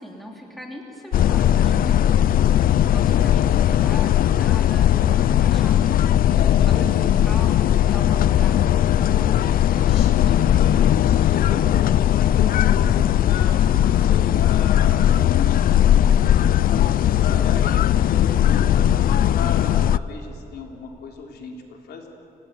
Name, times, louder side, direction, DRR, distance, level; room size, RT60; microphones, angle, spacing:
voice 1, 0.0-2.3 2.7-6.3 6.7-6.9 7.2-10.5, equal, ahead, -1 dB, 3.1 m, -39 dB
sound 1, 1.1-20.0, left 11 dB, 65° left, 0.5 m, -18 dB
voice 2, 6.3-7.1 9.4-22.1, left 5 dB, 85° left, 2 dB, 3.6 m, -35 dB
26.5 x 18.5 x 9.3 m, 2.9 s
wide cardioid pair, 155°, 16 cm